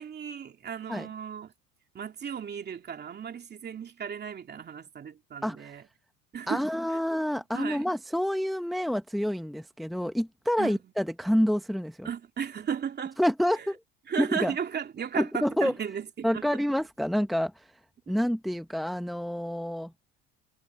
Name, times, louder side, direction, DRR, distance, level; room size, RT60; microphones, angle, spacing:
voice 1, 0.0-1.5 1.9-5.8 6.3-7.0 7.5-7.8 10.6-10.8 12.0-13.2 13.5-13.7 14.1-16.6 18.1-18.2, right 7 dB, 35° right, 2.9 m, -35 dB
voice 2, 5.4-5.7 6.5-12.1 13.2-13.8 14.2-14.5 15.2-15.7 16.2-17.7 18.1-19.9, equal, ahead, 0.8 m, -28 dB
supercardioid pair, 110°, 31 cm